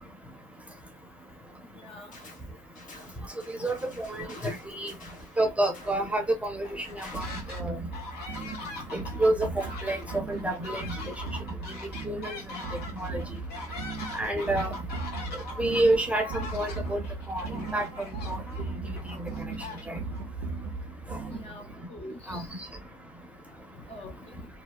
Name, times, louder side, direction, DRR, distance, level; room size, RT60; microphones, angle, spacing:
voice 1, 1.6-2.2 21.3-22.5 23.8-24.5, left 1 dB, 35° left, 0.7 m, -45 dB
sound 1, 2.1-2.5 2.8-7.6, left 2 dB, 50° left, 1.1 m, -50 dB
voice 2, 3.6-4.9 5.4-7.3 7.6-7.8 8.9-10.9 12.1-12.4 13.0-13.2 14.1-14.7 15.6-17.0 17.3-17.4 17.7-17.9 18.3-18.4 19.2-19.3 19.9-20.0 22.3-22.4, right 1 dB, 10° right, 0.7 m, -28 dB
sound 2, 6.6-7.6 7.9-20.2, left 3 dB, 70° left, 1.2 m, -42 dB
sound 3, 7.1-21.8, right 3 dB, 85° right, 0.5 m, -38 dB
2.8 x 2.1 x 2.2 m
cardioid pair, 110°, 17 cm